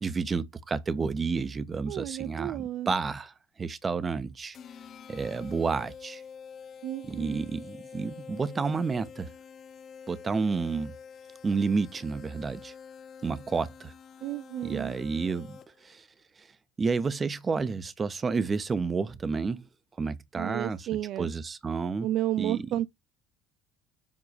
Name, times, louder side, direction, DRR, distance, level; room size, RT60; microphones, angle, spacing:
voice 1, 0.0-4.6 5.1-6.2 7.0-9.3 10.1-10.9 11.4-12.7 13.2-13.9 14.6-16.1 16.4-16.5 16.8-19.6 20.0-20.9 21.2-22.1 22.4-22.7, right 4 dB, 30° right, 1.0 m, -30 dB
voice 2, 1.9-2.9 6.8-7.5 14.2-15.0 20.3-21.3 22.0-22.9, right 13 dB, 55° right, 0.4 m, -32 dB
sound 1, 4.5-15.9, left 6 dB, 45° left, 0.6 m, -47 dB
7.5 x 3.7 x 4.8 m
hypercardioid pair, 65°, 0 cm